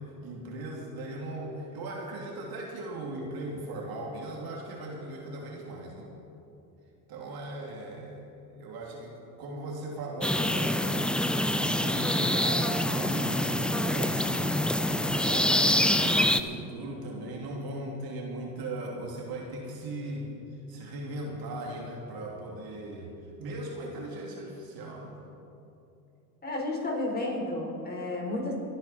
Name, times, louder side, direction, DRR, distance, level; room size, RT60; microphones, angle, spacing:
voice 1, 0.0-6.1 7.1-10.9 11.5-14.5 15.0-20.3 20.7-23.1 23.4-25.2, right 2 dB, 50° right, -1 dB, 3.0 m, -38 dB
sound 1, 10.2-16.4, left 1 dB, ahead, 0.4 m, -26 dB
voice 2, 26.4-28.5, left 2 dB, 20° left, -2 dB, 4.4 m, -32 dB
27.0 x 9.5 x 4.4 m, 2.8 s
hypercardioid pair, 80°, 47 cm